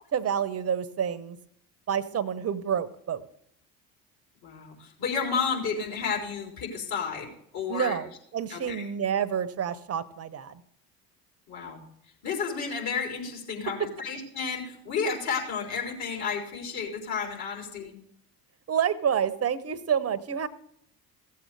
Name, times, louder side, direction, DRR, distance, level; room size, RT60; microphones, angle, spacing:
voice 1, 0.1-1.4 1.9-3.2 7.7-8.1 8.3-10.6 18.7-20.5, right 8 dB, 30° right, 14 dB, 0.9 m, -28 dB
voice 2, 4.4-8.0 8.5-8.8 11.5-11.8 12.2-17.9, left 6 dB, 50° left, -1 dB, 4.0 m, -32 dB
16.0 x 7.7 x 3.4 m, 0.68 s
hypercardioid pair, 60°, 47 cm